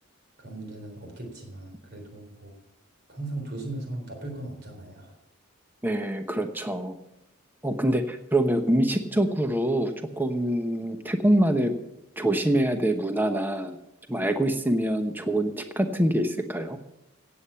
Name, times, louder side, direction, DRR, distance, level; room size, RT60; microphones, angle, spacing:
voice 1, 0.4-2.5 3.1-5.1, right 2 dB, 50° right, 3 dB, 3.7 m, -38 dB
voice 2, 5.8-7.0 7.6-11.7 12.2-13.8 14.1-16.8, right 1 dB, 10° right, 7 dB, 0.9 m, -25 dB
16.0 x 8.5 x 5.7 m, 0.84 s
head